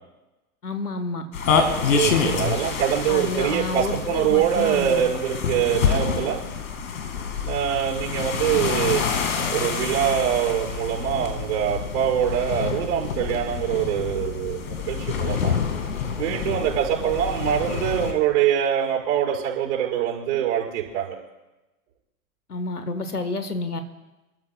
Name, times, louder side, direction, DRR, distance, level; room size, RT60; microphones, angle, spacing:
voice 1, 0.6-1.2 3.1-5.1 22.5-23.8, left 3 dB, 85° left, 10 dB, 1.3 m, -29 dB
sound 1, 1.3-18.1, left 6 dB, 65° left, 2.0 m, -27 dB
voice 2, 1.9-6.4 7.5-9.0 9.5-15.5 16.2-21.2, right 10 dB, 50° right, -4 dB, 5.1 m, -24 dB
29.0 x 12.5 x 2.2 m, 1.1 s
figure-of-eight pair, 100°, 45 cm